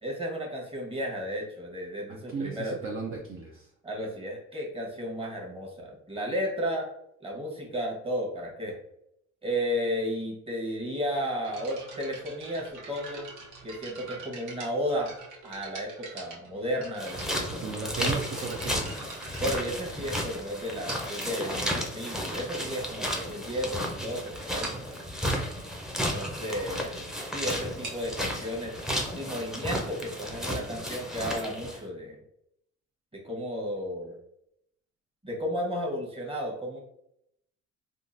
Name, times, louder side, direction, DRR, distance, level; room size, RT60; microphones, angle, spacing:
voice 1, 0.0-2.8 3.8-6.9 7.2-8.8 9.4-13.3 13.6-15.1 15.4-18.2 19.4-24.7 25.9-27.0 27.3-28.7 29.1-32.2 33.1-34.2 35.2-36.8, equal, 20° right, -1 dB, 1.1 m, -33 dB
voice 2, 2.3-3.7 17.3-19.0, right 5 dB, 45° right, -1 dB, 0.5 m, -36 dB
sound 1, 11.4-20.3 20.9-21.3 22.1-22.2 22.8-22.9 23.2-23.4 23.7-23.8 24.1-24.2 24.6-24.9 27.6-31.1, right 4 dB, 85° right, 1.0 m, -45 dB
sound 2, 17.0-31.8, equal, ahead, 0.6 m, -33 dB
3.6 x 2.4 x 2.6 m, 0.76 s
cardioid pair, 90°, 30 cm